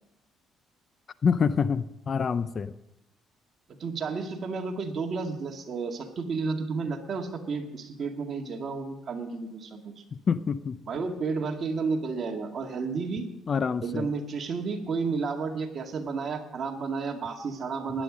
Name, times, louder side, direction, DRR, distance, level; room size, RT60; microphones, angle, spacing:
voice 1, 1.2-2.7 10.1-10.8 13.5-14.1, left 6 dB, 40° left, 14 dB, 0.6 m, -26 dB
voice 2, 3.8-10.0 10.9-13.3 13.8-18.0, right 4 dB, 45° right, 2 dB, 2.2 m, -32 dB
16.5 x 11.5 x 5.1 m, 0.92 s
cardioid pair, 105°, 0 cm